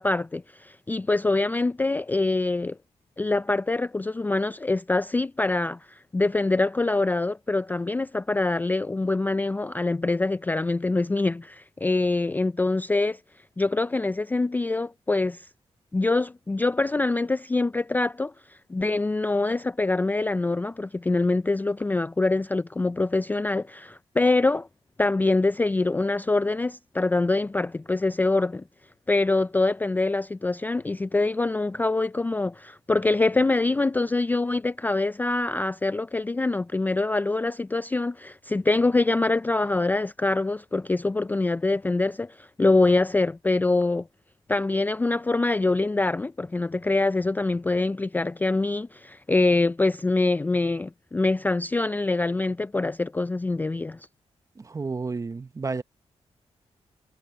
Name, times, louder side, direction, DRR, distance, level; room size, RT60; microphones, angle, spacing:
voice 1, 0.0-2.8 3.2-13.2 13.6-15.4 15.9-24.7 25.0-28.6 29.1-44.1 44.5-54.0, left 2 dB, 15° left, 0.3 m, -24 dB
voice 2, 54.6-55.8, right 4 dB, 30° right, 0.9 m, -31 dB
cardioid pair, 105°, 11 cm